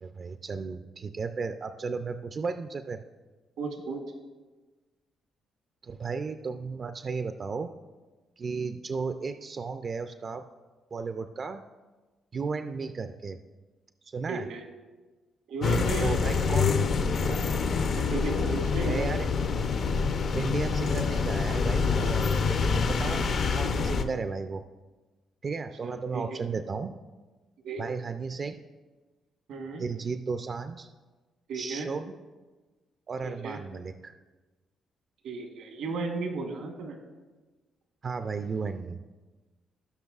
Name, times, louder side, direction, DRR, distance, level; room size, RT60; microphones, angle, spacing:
voice 1, 0.0-3.0 5.8-7.7 8.4-10.4 10.9-11.6 12.3-13.4 14.0-14.5 16.0-16.7 18.8-19.3 20.3-24.6 25.4-26.9 27.8-28.6 29.8-30.9 31.5-32.1 33.1-34.1 38.0-39.0, right 4 dB, 45° right, 8 dB, 0.4 m, -34 dB
voice 2, 3.6-4.0 14.3-14.6 15.5-17.4 18.0-19.1 25.8-26.4 27.6-27.8 29.5-29.8 31.5-31.9 33.2-33.6 35.2-37.0, right 3 dB, 80° right, 3 dB, 1.3 m, -35 dB
sound 1, 15.6-24.0, left 5 dB, 60° left, 0.6 m, -26 dB
17.5 x 5.9 x 2.4 m, 1.3 s
cardioid pair, 90°, 0 cm